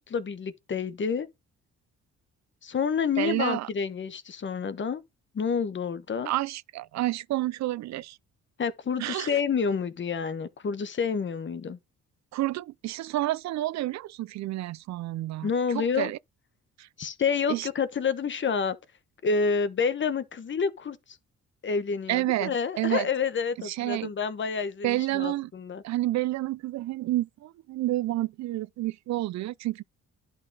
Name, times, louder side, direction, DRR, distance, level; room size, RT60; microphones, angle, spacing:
voice 1, 0.1-1.3 2.6-5.0 5.3-6.3 8.6-11.8 15.4-16.1 17.0-18.8 19.2-21.0 21.6-25.8, left 6 dB, 40° left, 1.1 m, -28 dB
voice 2, 3.2-3.7 6.3-8.2 9.0-9.4 12.3-15.5 15.7-16.2 16.8-16.9 17.5-17.7 22.1-23.1 23.6-24.1 24.8-25.5 25.8-29.8, right 16 dB, 65° right, 0.5 m, -29 dB
10.5 x 3.9 x 4.0 m
cardioid pair, 90°, 30 cm